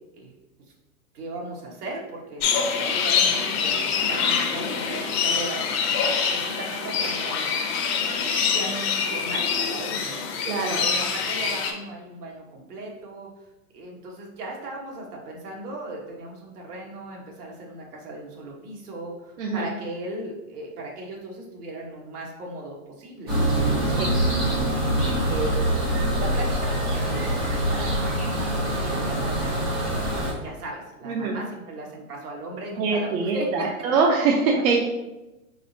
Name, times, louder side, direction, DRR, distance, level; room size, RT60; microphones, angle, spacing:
voice 1, 1.1-5.7 6.3-7.6 8.5-10.3 10.8-13.3 13.7-24.1 25.3-33.5, right 2 dB, 85° right, -1 dB, 1.4 m, -37 dB
sound 1, 2.4-11.7, left 6 dB, 45° left, 0.7 m, -25 dB
voice 2, 10.4-10.8 19.4-19.6 24.0-24.1 31.1-31.4 32.8-34.8, right 4 dB, 65° right, -1 dB, 0.7 m, -23 dB
sound 2, 23.3-30.3, right 1 dB, 15° right, 0.3 m, -24 dB
4.0 x 3.8 x 2.7 m, 1.0 s
hypercardioid pair, 145°, 44 cm